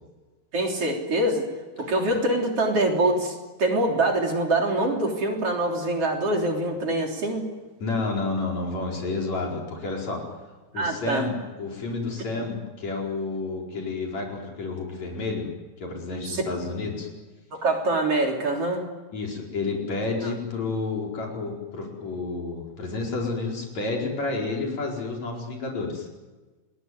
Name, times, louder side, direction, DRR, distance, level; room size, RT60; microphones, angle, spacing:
voice 1, 0.5-1.5 1.8-7.5 10.7-11.3 12.3-12.4 16.3-16.4 17.6-18.8 20.2-20.3, right 2 dB, 50° right, 1 dB, 4.4 m, -24 dB
voice 2, 7.8-10.2 10.7-15.5 15.8-17.1 19.1-26.1, left 3 dB, 65° left, 0 dB, 5.9 m, -30 dB
29.5 x 21.0 x 9.6 m, 1.3 s
omnidirectional pair, 3.4 m